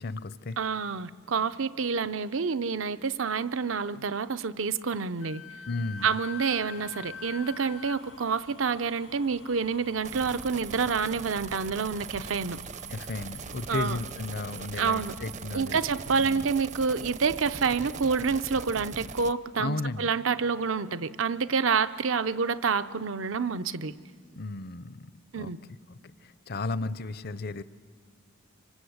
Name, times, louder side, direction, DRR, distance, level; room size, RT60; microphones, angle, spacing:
voice 1, 0.0-0.6 5.7-6.1 12.9-15.8 16.1-16.4 19.6-20.1 24.4-25.1 25.3-25.5 25.9-27.6, left 3 dB, 50° left, 16 dB, 0.6 m, -34 dB
voice 2, 0.6-5.4 6.0-12.6 13.7-14.0 14.8-15.1 15.5-23.9 25.3-25.6, right 5 dB, 75° right, 12 dB, 0.7 m, -28 dB
Wind instrument woodwind instrument, 5.2-8.0, left 7 dB, 75° left, 0.9 m, -42 dB
sound 1, 6.0-15.1, left 4 dB, 90° left, 2.3 m, -53 dB
sound 2, 10.0-19.3, right 5 dB, 35° right, 0.6 m, -41 dB
26.0 x 24.5 x 8.0 m, 2.1 s
head